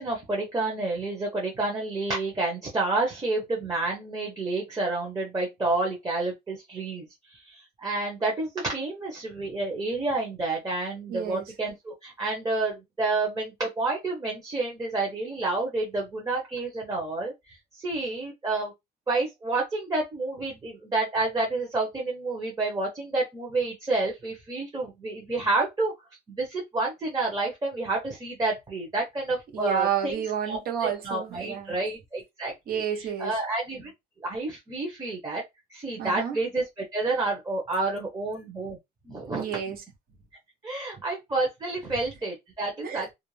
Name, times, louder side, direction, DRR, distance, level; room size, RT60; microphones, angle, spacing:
voice 1, 0.0-7.1 7.3-18.7 19.1-25.9 26.3-30.1 30.5-32.8 33.2-33.9 34.2-35.4 35.7-38.8 39.1-39.5 40.6-43.1, right 2 dB, 20° right, 0.7 m, -29 dB
voice 2, 11.1-11.5 29.5-31.7 32.7-33.4 36.0-36.4 39.3-39.8 42.8-43.1, right 9 dB, 65° right, 0.9 m, -30 dB
2.4 x 2.1 x 3.1 m
cardioid pair, 110°, 17 cm